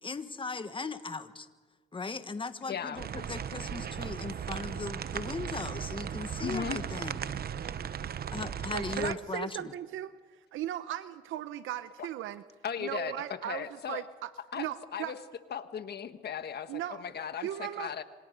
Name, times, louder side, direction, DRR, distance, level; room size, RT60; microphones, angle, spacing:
voice 1, 0.0-1.5 1.9-7.3 8.3-9.7, left 4 dB, 25° left, 10 dB, 1.5 m, -38 dB
voice 2, 2.7-3.0 6.4-6.9 12.0-12.1 12.6-14.1 14.5-15.2 15.5-18.0, left 8 dB, 55° left, 10 dB, 1.5 m, -37 dB
sound 1, 3.0-9.1, right 8 dB, 50° right, 0.9 m, -37 dB
voice 3, 8.7-10.2 10.5-12.4 12.8-15.1 16.7-17.0 17.4-17.9, right 12 dB, 85° right, 13 dB, 0.8 m, -37 dB
27.0 x 26.0 x 5.3 m, 1.4 s
cardioid pair, 90°, 20 cm